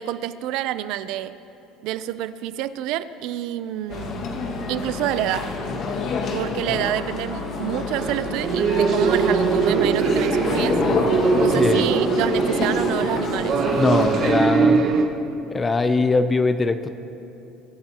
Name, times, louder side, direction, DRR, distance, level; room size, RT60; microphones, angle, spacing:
voice 1, 0.0-1.3 1.8-4.3 4.7-5.5 6.3-10.8 11.4-13.6, right 12 dB, 70° right, 14 dB, 0.5 m, -28 dB
sound 1, 3.9-14.3, left 3 dB, 50° left, 1.8 m, -27 dB
sound 2, 8.0-15.0, right 5 dB, 50° right, 1.4 m, -21 dB
voice 2, 11.3-11.9 13.8-14.8 15.5-16.9, left 3 dB, 20° left, 10 dB, 0.6 m, -21 dB
23.5 x 13.5 x 3.0 m, 2.9 s
supercardioid pair, 100°, 0 cm